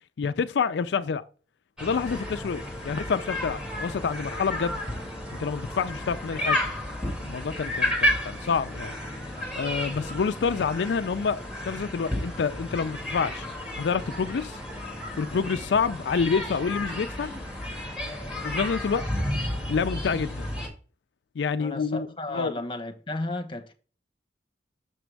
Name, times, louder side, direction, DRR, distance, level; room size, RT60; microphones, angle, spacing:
voice 1, 0.2-1.2 1.8-4.8 5.4-6.6 7.2-8.9 9.6-13.5 13.8-14.6 15.2-17.3 18.4-19.1 19.7-20.5 21.4-22.5, left 5 dB, 70° left, 0.4 m, -28 dB
sound 1, 1.8-20.7, left 1 dB, 5° right, 1.8 m, -32 dB
voice 2, 21.6-23.7, left 2 dB, 30° left, 1.0 m, -34 dB
6.7 x 6.1 x 3.4 m
head